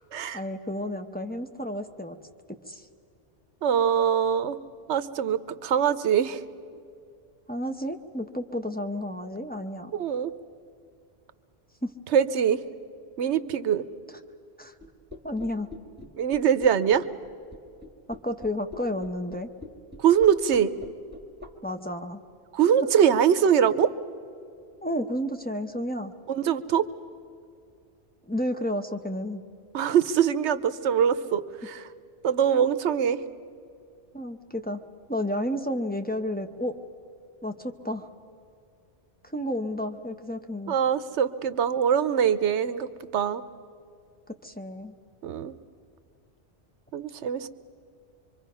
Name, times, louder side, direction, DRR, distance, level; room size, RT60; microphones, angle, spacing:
voice 1, 0.3-2.2 2.7-2.8 7.5-9.9 11.8-11.9 14.6-14.7 15.2-15.7 18.1-19.5 21.6-22.2 24.8-26.1 28.3-29.4 34.1-34.8 35.1-36.8 37.4-38.1 39.3-40.8 44.3-44.9, left 1 dB, 10° left, 5 dB, 0.8 m, -31 dB
voice 2, 3.6-4.6 4.9-6.4 9.9-10.3 12.1-12.6 13.2-13.8 16.2-17.0 20.0-20.7 22.5-23.9 26.3-26.8 29.7-31.9 32.2-33.2 40.7-43.4 45.2-45.5 46.9-47.5, right 8 dB, 75° right, 14 dB, 1.0 m, -23 dB
sound 1, 14.8-21.5, left 3 dB, 10° right, 1.5 m, -43 dB
25.0 x 24.5 x 5.6 m, 2.4 s
omnidirectional pair, 1.2 m